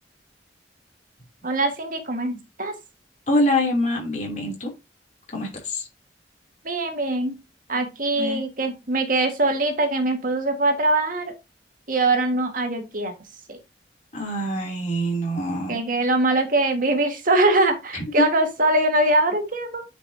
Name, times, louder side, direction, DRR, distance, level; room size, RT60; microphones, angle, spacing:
voice 1, 1.4-2.7 6.6-7.4 7.7-11.3 11.9-13.1 13.5-13.6 15.7-19.8, right 2 dB, 50° right, 1.7 m, -22 dB
voice 2, 3.3-4.7 5.3-5.9 8.1-8.4 14.1-15.8 17.9-18.0, left 1 dB, 40° left, 3.0 m, -25 dB
9.5 x 5.4 x 2.8 m
head